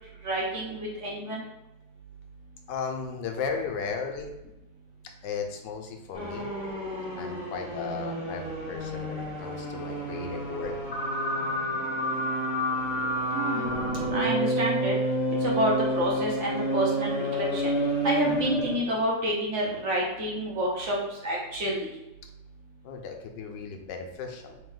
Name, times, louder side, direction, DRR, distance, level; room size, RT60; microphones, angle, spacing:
voice 1, 0.2-1.4 13.3-13.7 14.1-15.0 15.4-17.7 18.0-21.9, equal, 55° right, -3 dB, 0.8 m, -29 dB
voice 2, 2.7-4.3 5.2-6.5 7.1-10.8 22.8-24.5, left 5 dB, 85° left, 3 dB, 1.3 m, -35 dB
sound 1, 6.1-18.9, right 1 dB, 40° left, 1.3 m, -29 dB
3.4 x 2.8 x 3.8 m, 0.95 s
omnidirectional pair, 1.9 m